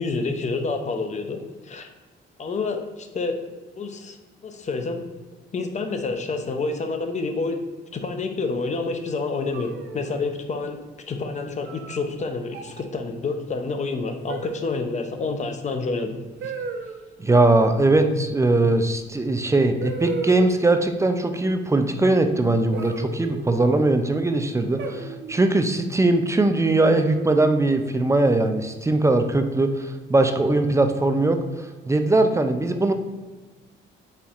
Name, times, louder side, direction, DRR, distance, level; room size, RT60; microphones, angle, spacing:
voice 1, 0.0-1.9 2.4-3.4 3.7-4.2 4.4-5.0 5.5-7.6 7.9-10.8 11.1-16.2, left 3 dB, 35° left, 6 dB, 0.5 m, -28 dB
sound 1, 9.5-10.4 11.7-12.0 12.5-12.9 14.3-14.9 16.4-17.0 18.9-19.0 19.8-20.8 22.7-23.8 24.8-25.4 26.6-27.2, right 4 dB, 65° right, 0.6 m, -35 dB
voice 2, 17.2-31.4 31.9-32.9, right 2 dB, 15° right, 7 dB, 0.3 m, -20 dB
4.3 x 3.9 x 2.4 m, 1.3 s
cardioid pair, 90°, 20 cm